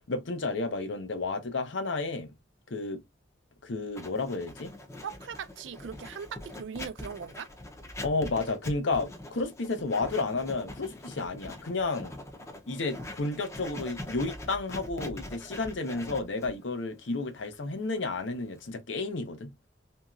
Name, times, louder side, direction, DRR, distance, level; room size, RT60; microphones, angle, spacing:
voice 1, 0.1-2.4 2.7-3.0 3.6-4.7 8.0-12.1 12.7-19.5, left 3 dB, 70° left, 0.7 m, -32 dB
Writing, 4.0-18.7, left 1 dB, 15° left, 0.6 m, -43 dB
voice 2, 5.0-7.5, right 6 dB, 70° right, 0.4 m, -39 dB
2.9 x 2.7 x 2.4 m
head